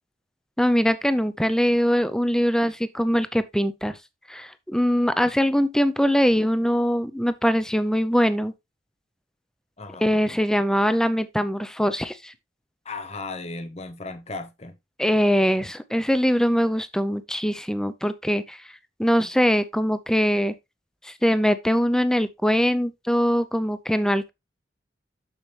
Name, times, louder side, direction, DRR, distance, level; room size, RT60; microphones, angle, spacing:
voice 1, 0.6-4.0 4.3-8.5 10.0-12.3 15.0-18.6 19.0-20.5 21.0-24.3, equal, 5° left, 0.6 m, -22 dB
voice 2, 9.8-10.2 12.8-14.7, left 3 dB, 35° left, 0.9 m, -36 dB
7.2 x 6.8 x 3.3 m
head